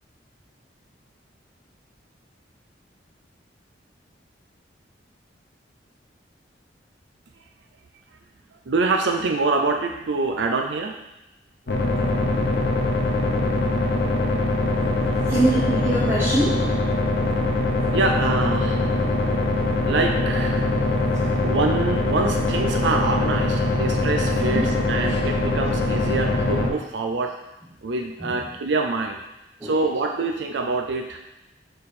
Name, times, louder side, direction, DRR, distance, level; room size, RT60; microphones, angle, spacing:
voice 1, 8.7-11.0 17.9-18.9 19.9-20.7 21.4-27.3 27.8-29.2 29.6-31.2, right 3 dB, 75° right, 4 dB, 0.5 m, -25 dB
sound 1, 11.7-26.7, left 2 dB, 60° left, 0.8 m, -22 dB
voice 2, 15.3-16.7 24.4-24.7 25.1-25.2 28.2-28.4 29.6-29.7, right 1 dB, 15° right, -8 dB, 0.8 m, -23 dB
5.3 x 4.3 x 4.2 m, 0.91 s
head